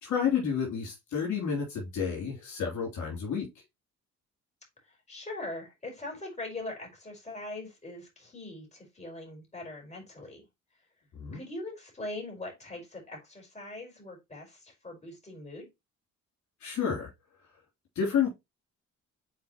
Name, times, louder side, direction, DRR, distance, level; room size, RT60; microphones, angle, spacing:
voice 1, 0.0-3.5 11.1-11.4 16.6-17.1 17.9-18.3, left 7 dB, 70° left, 3.3 m, -30 dB
voice 2, 4.8-10.4 11.3-15.7, left 2 dB, 20° left, 4.8 m, -41 dB
7.4 x 4.5 x 3.0 m
cardioid pair, 90°, 30 cm